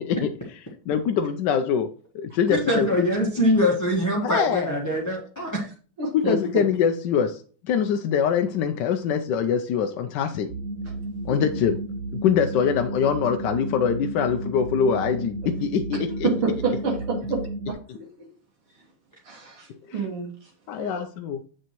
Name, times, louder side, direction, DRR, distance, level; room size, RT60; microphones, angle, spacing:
voice 1, 0.9-1.9 2.1-3.1 4.2-4.7 6.1-10.5 11.2-11.8 12.1-16.3 19.9-20.0 20.7-21.4, left 7 dB, 75° left, 7 dB, 1.0 m, -24 dB
voice 2, 2.5-5.7 11.3-11.4, equal, 10° left, -3 dB, 1.1 m, -23 dB
voice 3, 6.0-6.4 10.9-11.0 16.2-16.9 18.2-18.3 19.2-20.3 20.8-21.1, right 4 dB, 80° right, -2 dB, 2.6 m, -27 dB
sound 1, 10.5-17.7, right 2 dB, 60° right, 0.9 m, -33 dB
7.9 x 6.4 x 3.0 m, 0.39 s
omnidirectional pair, 2.4 m